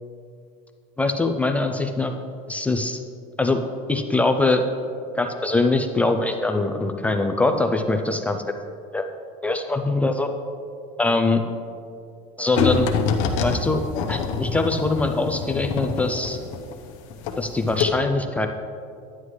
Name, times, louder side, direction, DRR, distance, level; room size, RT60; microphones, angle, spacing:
voice 1, 1.0-2.2 2.5-3.0 3.4-3.6 3.9-4.6 5.1-8.4 8.9-9.1 9.4-10.3 11.0-11.4 12.4-12.9 13.4-13.8 14.1-16.4 17.4-18.5, left 2 dB, 10° left, 5 dB, 0.3 m, -22 dB
sound 1, 12.6-17.4 17.7-17.8, left 5 dB, 80° left, 0.9 m, -25 dB
11.0 x 9.7 x 3.2 m, 2.4 s
cardioid pair, 160°, 17 cm